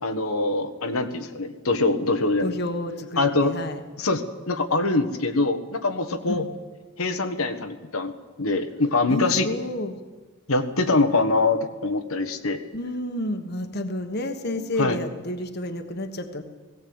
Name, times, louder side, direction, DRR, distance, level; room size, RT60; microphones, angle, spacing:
voice 1, 0.0-2.5 3.2-3.5 4.0-6.4 7.0-9.5 10.5-12.7 14.8-15.0, left 3 dB, 85° left, 7 dB, 1.5 m, -24 dB
voice 2, 2.4-3.8 6.2-6.5 9.1-10.0 12.7-16.4, left 1 dB, 50° left, 8 dB, 1.3 m, -30 dB
18.0 x 17.0 x 8.8 m, 1.3 s
head